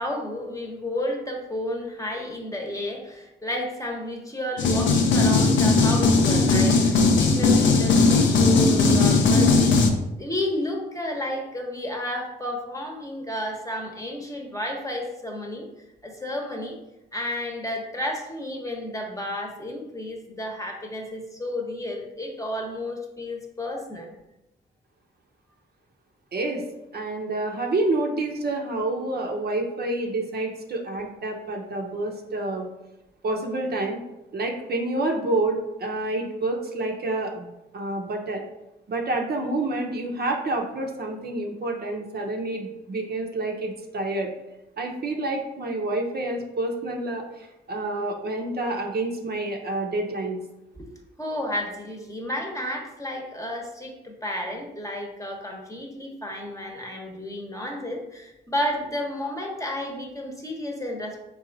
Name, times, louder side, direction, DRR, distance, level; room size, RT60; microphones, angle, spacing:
voice 1, 0.0-9.8 10.2-15.7 16.0-16.8 17.1-24.1 50.7-50.9 51.2-61.2, left 1 dB, 15° left, 1 dB, 0.9 m, -32 dB
sound 1, 4.6-9.9, left 3 dB, 85° left, 0.5 m, -18 dB
voice 2, 26.3-26.6 26.9-32.7 33.2-34.0 34.3-37.5 37.7-38.4 38.9-44.3 44.8-50.4, right 2 dB, 60° right, 1 dB, 0.7 m, -28 dB
4.0 x 2.4 x 3.9 m, 0.93 s
cardioid pair, 60°, 19 cm